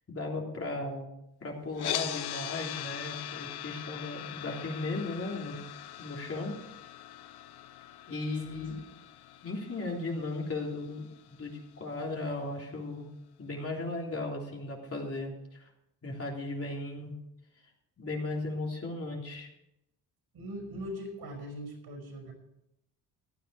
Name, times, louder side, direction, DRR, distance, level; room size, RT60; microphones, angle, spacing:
voice 1, 0.1-1.1 1.4-5.6 6.0-6.6 8.1-8.7 9.4-13.1 13.4-15.7 16.0-17.1 18.0-19.5, left 2 dB, 35° left, -1 dB, 3.4 m, -36 dB
sound 1, 1.7-11.8, left 11 dB, 70° left, 1.0 m, -41 dB
voice 2, 20.3-22.3, equal, 65° right, 3 dB, 6.0 m, -41 dB
15.5 x 10.0 x 4.8 m, 0.82 s
cardioid pair, 100°, 40 cm